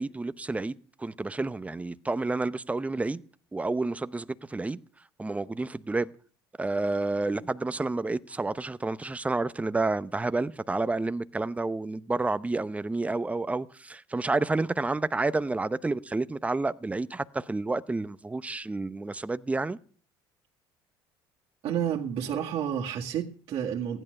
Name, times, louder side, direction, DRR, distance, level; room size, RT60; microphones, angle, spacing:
voice 1, 0.0-3.2 3.5-4.8 5.2-6.1 6.6-19.8, right 3 dB, 10° right, 0.7 m, -30 dB
voice 2, 21.6-24.0, right 9 dB, 60° right, 1.9 m, -30 dB
15.0 x 11.0 x 6.5 m
supercardioid pair, 90°, 11 cm